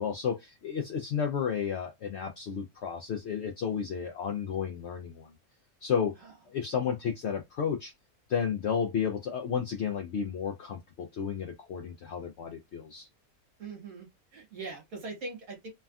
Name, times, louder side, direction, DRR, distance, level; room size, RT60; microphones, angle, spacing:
voice 1, 0.0-5.3 5.8-6.2 6.5-7.9 8.3-13.1, left 7 dB, 70° left, 0.6 m, -32 dB
voice 2, 13.6-15.7, right 3 dB, 60° right, 1.6 m, -41 dB
3.3 x 2.2 x 2.3 m
omnidirectional pair, 1.6 m